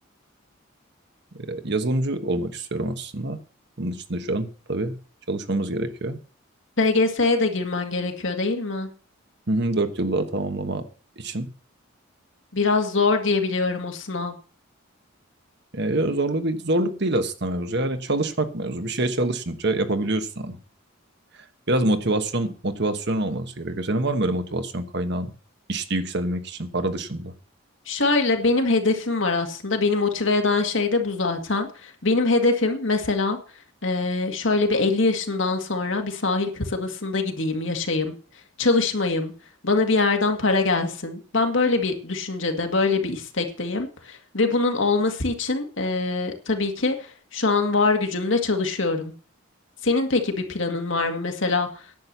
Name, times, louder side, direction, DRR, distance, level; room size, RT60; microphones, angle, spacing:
voice 1, 1.3-3.4 3.8-4.9 5.3-6.2 9.5-10.8 11.2-11.5 15.7-20.6 21.7-25.3 25.7-27.3, right 2 dB, 55° right, 9 dB, 1.2 m, -26 dB
voice 2, 6.8-8.9 12.5-14.3 27.9-33.4 33.8-38.1 38.6-39.3 39.6-46.9 47.3-49.1 49.8-51.7, left 3 dB, 60° left, 4 dB, 2.0 m, -23 dB
10.5 x 7.7 x 6.8 m, 0.39 s
head